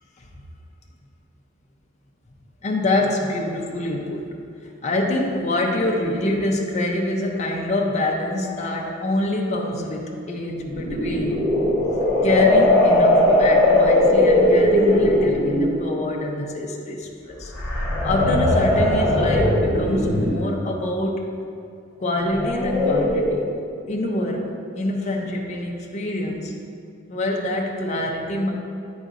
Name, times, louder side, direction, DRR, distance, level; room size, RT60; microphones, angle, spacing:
voice 1, 2.6-11.4 12.2-17.5 18.0-21.3 22.0-23.5 23.9-26.5 27.1-28.5, left 1 dB, 35° left, 0 dB, 0.5 m, -25 dB
sound 1, 10.6-15.7 17.4-20.6 22.3-23.3, left 1 dB, 10° right, 1.4 m, -19 dB
8.8 x 5.1 x 2.5 m, 2.4 s
head